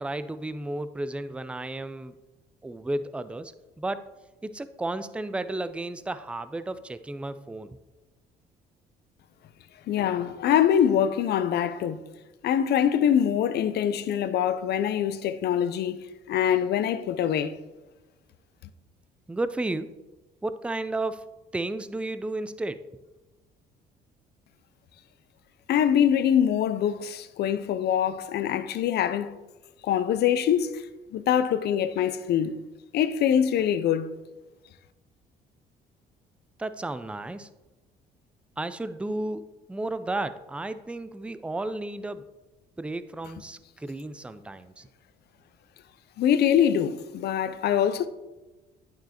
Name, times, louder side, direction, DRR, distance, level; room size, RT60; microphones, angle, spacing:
voice 1, 0.0-2.1 2.6-4.1 4.4-7.8 19.3-19.9 20.4-22.9 36.6-37.5 38.6-39.4 39.7-42.3 42.8-44.9, right 2 dB, 5° right, 0.4 m, -33 dB
voice 2, 9.9-12.0 12.4-17.5 25.7-29.3 29.8-30.9 31.1-32.6 32.9-34.2 46.2-48.1, left 9 dB, 60° left, 0.5 m, -24 dB
8.8 x 5.7 x 2.9 m
supercardioid pair, 65°, 19 cm